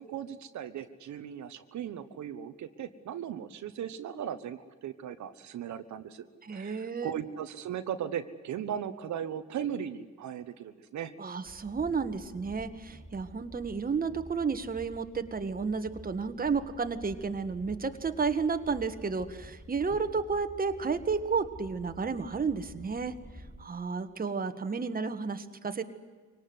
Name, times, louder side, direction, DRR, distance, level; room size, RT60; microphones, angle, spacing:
voice 1, 0.0-6.2 6.5-11.1, right 9 dB, 70° right, 9 dB, 1.3 m, -37 dB
voice 2, 6.4-7.1 11.2-23.1 23.6-25.8, right 5 dB, 30° right, 8 dB, 1.7 m, -32 dB
Train, 11.4-23.7, equal, ahead, 4.6 m, -50 dB
24.0 x 18.5 x 9.6 m, 1.5 s
cardioid pair, 90°, 30 cm